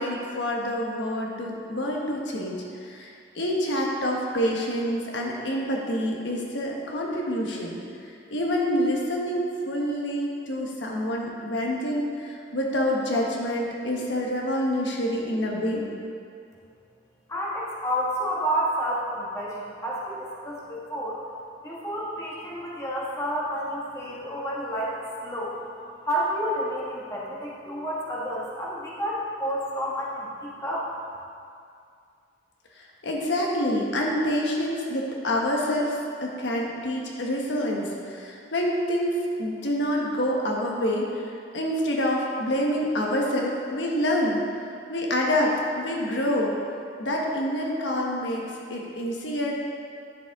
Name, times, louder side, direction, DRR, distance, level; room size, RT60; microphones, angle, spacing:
voice 1, 0.0-15.9 32.7-44.4 44.9-46.5 47.0-49.6, equal, 80° left, -2 dB, 1.2 m, -27 dB
voice 2, 17.3-21.2 21.6-25.5 26.0-30.9, equal, 15° left, -6 dB, 1.3 m, -30 dB
10.5 x 7.1 x 3.6 m, 2.4 s
head